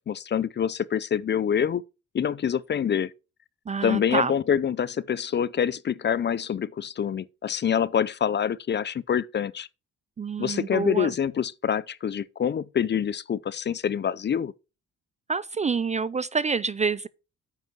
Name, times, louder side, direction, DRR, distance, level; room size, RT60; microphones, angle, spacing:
voice 1, 0.1-1.8 2.1-3.1 3.8-9.7 10.4-14.5, left 8 dB, 35° left, 0.5 m, -26 dB
voice 2, 3.7-4.3 10.2-11.1 15.3-17.1, right 5 dB, 25° right, 0.4 m, -27 dB
9.1 x 5.4 x 6.0 m
cardioid pair, 90°, 30 cm